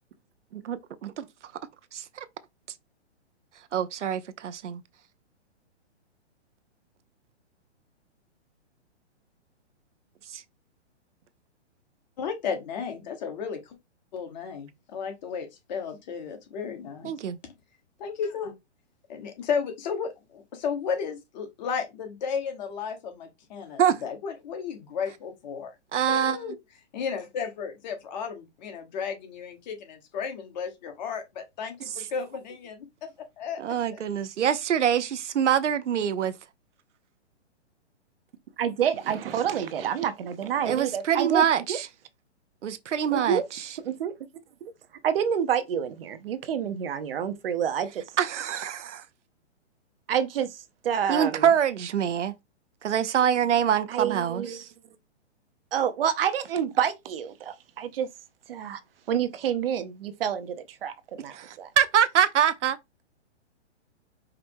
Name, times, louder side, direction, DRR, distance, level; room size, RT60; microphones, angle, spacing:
voice 1, 0.5-1.2 1.9-2.3 3.7-4.8 10.3-10.4 17.0-17.4 23.8-24.0 25.9-26.4 32.0-32.1 33.6-36.3 40.7-41.9 42.6-43.7 48.2-49.0 51.1-52.3 52.8-54.7 61.3-62.8, right 9 dB, 90° right, 0.7 m, -25 dB
voice 2, 12.2-13.7 14.1-17.1 18.0-18.5 19.1-25.7 26.1-26.5 26.9-34.0, left 6 dB, 40° left, 1.2 m, -34 dB
voice 3, 38.6-41.8 43.1-43.4 43.8-44.1 44.6-44.7 45.0-48.0 50.1-51.5 53.9-54.6 55.7-58.1 58.5-58.8 59.1-61.7, right 8 dB, 55° right, 0.8 m, -28 dB
5.0 x 2.1 x 4.5 m
hypercardioid pair, 150°, 35 cm